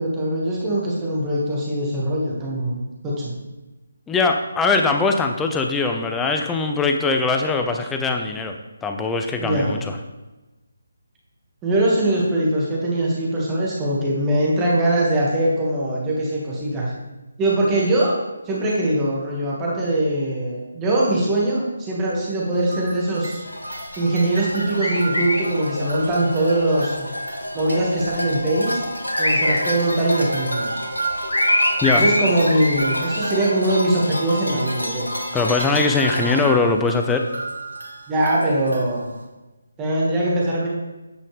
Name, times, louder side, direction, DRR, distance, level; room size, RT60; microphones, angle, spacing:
voice 1, 0.0-3.3 9.4-9.7 11.6-16.9 17.4-18.1 18.5-23.4 24.0-27.1 27.5-28.8 29.2-30.7 31.9-35.1 38.1-39.1 39.8-40.7, right 1 dB, 15° right, -4 dB, 2.1 m, -22 dB
voice 2, 4.1-10.0 31.8-32.0 35.3-37.2, left 4 dB, 10° left, 4 dB, 0.6 m, -21 dB
sound 1, 22.5-27.9 28.7-39.2, right 3 dB, 80° right, 2.0 m, -34 dB
sound 2, 23.5-36.4, left 1 dB, 80° left, 1.8 m, -26 dB
9.5 x 7.7 x 3.5 m, 1.1 s
figure-of-eight pair, 150°, 0 cm